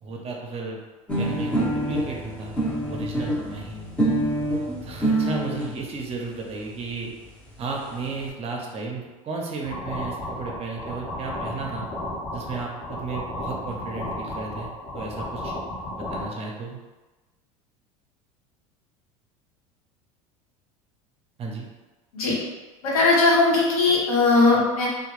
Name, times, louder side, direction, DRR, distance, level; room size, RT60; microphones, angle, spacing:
voice 1, 0.0-0.8 1.2-2.5 2.9-3.9 4.8-7.1 7.6-11.9 12.3-15.5 15.9-16.8 21.4-21.7, right 4 dB, 35° right, 0 dB, 0.6 m, -34 dB
sound 1, 1.1-5.7 6.5-6.6 6.9-7.0 7.2-7.3 7.5-8.1, right 1 dB, 10° left, 0.7 m, -26 dB
sound 2, 9.6-16.3, left 1 dB, 40° left, 0.8 m, -33 dB
voice 2, 22.8-24.9, left 3 dB, 85° left, -5 dB, 0.9 m, -19 dB
2.2 x 2.0 x 3.0 m, 1.2 s
hypercardioid pair, 85°, 18 cm